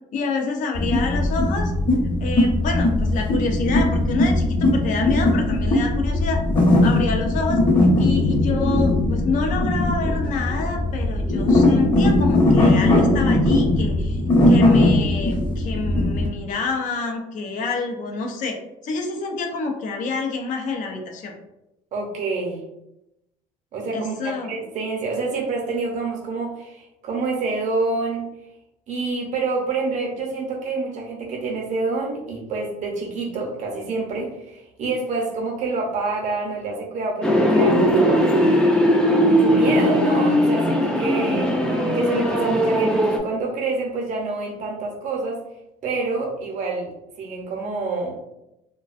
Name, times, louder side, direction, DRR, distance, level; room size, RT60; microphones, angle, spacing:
voice 1, 0.1-1.7 2.2-6.4 6.8-14.2 14.5-18.6 18.8-21.3 23.9-24.6, left 4 dB, 60° left, 3 dB, 0.5 m, -27 dB
sound 1, 0.7-16.3, left 1 dB, 30° left, 0.9 m, -19 dB
voice 2, 21.9-22.6 23.7-28.3 28.9-38.3 39.2-41.6 41.9-45.4 45.8-46.9 47.2-48.2, right 3 dB, 55° right, 0 dB, 0.7 m, -27 dB
sound 2, 37.2-43.2, equal, 5° left, 0.4 m, -19 dB
2.4 x 2.2 x 2.4 m, 0.90 s
cardioid pair, 110°, 15 cm